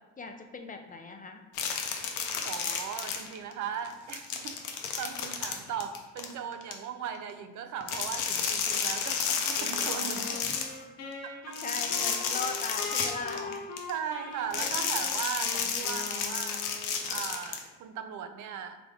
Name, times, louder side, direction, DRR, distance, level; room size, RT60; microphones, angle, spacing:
voice 1, 0.2-1.4 10.4-10.6 11.6-13.6, left 4 dB, 25° left, 4 dB, 0.5 m, -38 dB
sound 1, 1.5-3.5 3.8-6.7 7.8-10.8 11.5-13.9 14.5-17.6, left 6 dB, 90° left, 0.6 m, -32 dB
voice 2, 2.4-10.6 11.2-11.6 13.9-16.7 17.1-18.9, right 8 dB, 75° right, 8 dB, 0.5 m, -38 dB
Wind instrument woodwind instrument, 9.6-17.3, left 3 dB, 60° left, 0.9 m, -42 dB
3.9 x 3.3 x 3.5 m, 1.2 s
cardioid pair, 90°, 30 cm